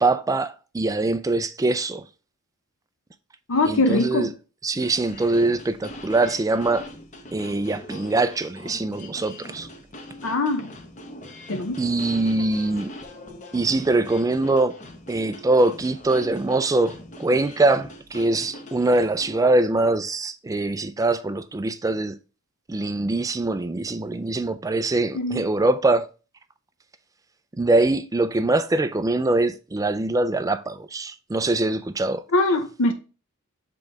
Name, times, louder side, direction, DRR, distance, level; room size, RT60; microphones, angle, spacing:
voice 1, 0.0-2.1 3.7-4.3 4.6-6.8 7.3-9.7 11.8-12.9 13.5-14.8 15.1-16.9 17.2-22.2 22.7-26.1 27.6-32.2, right 2 dB, 15° right, 0.3 m, -23 dB
voice 2, 3.5-4.3 10.2-10.7 11.5-11.8 25.1-25.4 32.3-32.9, left 2 dB, 60° left, 0.7 m, -22 dB
sound 1, 4.7-19.4, left 1 dB, 35° left, 0.9 m, -42 dB
7.1 x 3.8 x 3.4 m
head